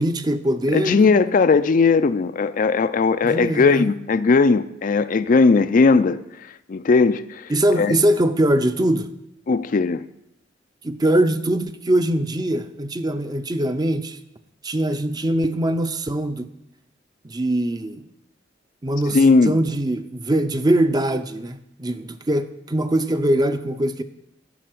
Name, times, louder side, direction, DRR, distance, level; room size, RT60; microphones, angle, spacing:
voice 1, 0.0-1.1 3.2-3.9 7.5-9.1 10.8-14.2 14.6-16.5 17.2-18.0 18.8-19.2 19.5-24.0, right 1 dB, 20° right, 0.6 m, -22 dB
voice 2, 0.7-6.2 6.7-7.9 9.5-10.1 19.1-19.6, left 4 dB, 45° left, 0.4 m, -18 dB
11.0 x 6.5 x 7.8 m
head